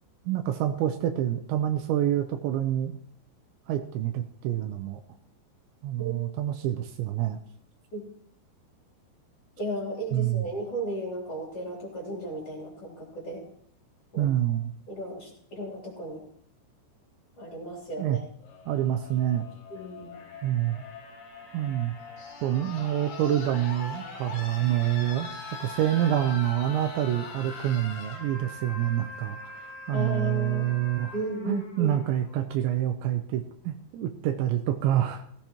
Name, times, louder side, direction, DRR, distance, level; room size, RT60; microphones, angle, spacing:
voice 1, 0.3-3.0 3.7-5.0 5.8-7.4 10.1-10.5 14.2-14.7 18.0-18.2 18.7-19.5 20.4-20.8 21.5-21.9 22.4-25.3 25.6-31.1 31.5-35.2, right 12 dB, 80° right, 6 dB, 2.8 m, -27 dB
voice 2, 9.6-13.4 14.1-14.3 14.9-16.2 17.4-18.2 19.7-20.2 29.9-30.7 31.1-32.0, right 1 dB, 35° left, -3 dB, 3.5 m, -35 dB
sound 1, 18.4-32.4 33.6-33.7, left 3 dB, 85° left, 5.4 m, -42 dB
16.5 x 15.5 x 3.0 m, 0.65 s
omnidirectional pair, 5.5 m